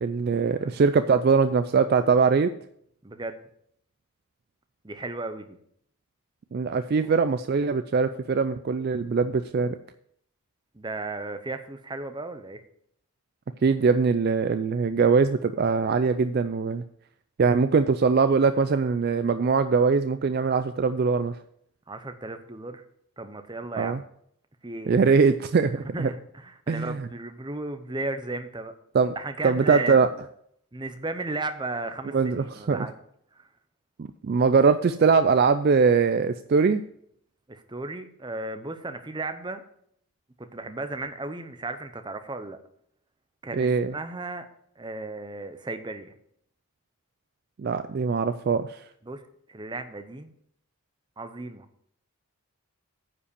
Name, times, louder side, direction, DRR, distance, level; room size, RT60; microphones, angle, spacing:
voice 1, 0.0-2.5 6.5-9.8 13.6-16.8 17.4-21.4 23.8-24.0 24.9-26.1 26.7-27.1 28.9-29.2 29.4-30.1 32.1-32.9 34.2-36.8 43.5-43.9 47.6-48.8, right 5 dB, 45° right, 11 dB, 0.3 m, -22 dB
voice 2, 3.0-3.4 4.8-5.6 7.0-7.2 10.7-12.6 21.9-22.8 23.2-24.0 24.6-24.9 25.7-28.7 29.1-30.0 30.7-33.0 37.5-39.6 40.4-42.6 43.4-44.5 44.8-46.1 49.0-49.2 49.5-50.3 51.2-51.7, right 2 dB, 20° right, 9 dB, 0.7 m, -35 dB
9.7 x 5.2 x 6.8 m, 0.69 s
head